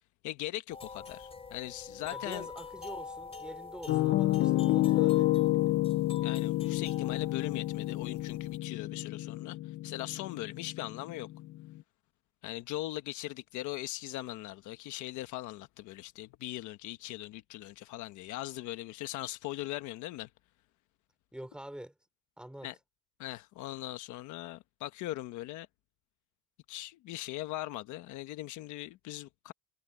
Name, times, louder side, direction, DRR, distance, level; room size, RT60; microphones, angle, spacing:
voice 1, 0.2-2.5 6.2-11.3 12.4-20.3 22.6-22.7 23.2-25.7 26.7-29.5, left 16 dB, 70° left, 1.2 m, -40 dB
sound 1, 0.7-8.6, left 5 dB, 20° left, 4.2 m, -46 dB
voice 2, 2.0-5.8 21.3-21.9 22.4-22.7, right 1 dB, 5° right, 4.8 m, -46 dB
Piano, 3.9-11.7, left 17 dB, 45° left, 0.4 m, -29 dB
cardioid pair, 175°, 31 cm